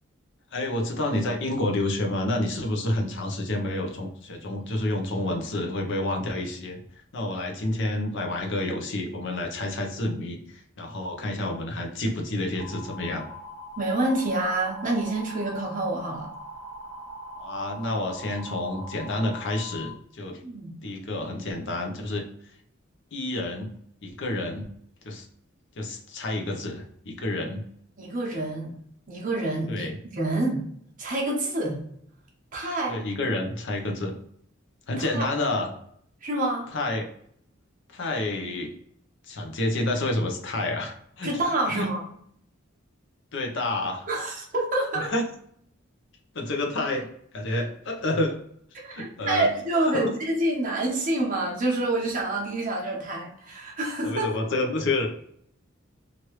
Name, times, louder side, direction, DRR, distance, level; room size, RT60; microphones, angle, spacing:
voice 1, 0.5-6.8 7.1-13.2 17.4-20.4 20.8-22.2 23.1-23.7 24.0-24.6 25.0-25.3 25.8-27.6 29.7-29.9 32.9-34.1 34.9-35.7 36.7-37.1 37.9-38.7 39.3-41.3 41.7-41.9 43.3-44.1 45.0-45.2 46.3-47.1 47.3-48.4 48.9-49.5 49.9-50.1 54.0-55.1, left 1 dB, 65° left, 2 dB, 0.7 m, -29 dB
sound 1, 12.6-19.9, equal, 80° right, 0.9 m, -41 dB
voice 2, 13.8-16.3 20.4-20.8 28.0-28.7 29.1-30.6 31.0-31.8 32.5-33.0 35.0-35.3 36.2-36.7 41.2-42.0 44.1-45.1 48.8-54.4, right 2 dB, 40° right, -2 dB, 0.9 m, -27 dB
3.0 x 2.5 x 3.0 m, 0.68 s
head